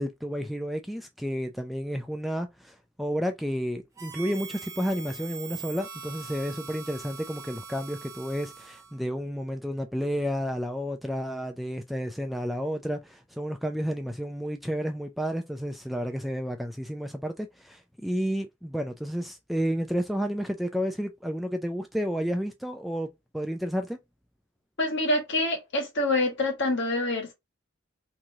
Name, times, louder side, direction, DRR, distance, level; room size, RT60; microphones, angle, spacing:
voice 1, 0.0-23.1 23.3-24.0, equal, ahead, 0.3 m, -31 dB
Harmonica, 4.0-9.0, right 6 dB, 15° right, 0.8 m, -42 dB
voice 2, 24.8-27.3, left 2 dB, 60° left, 1.4 m, -26 dB
3.1 x 2.7 x 3.5 m
head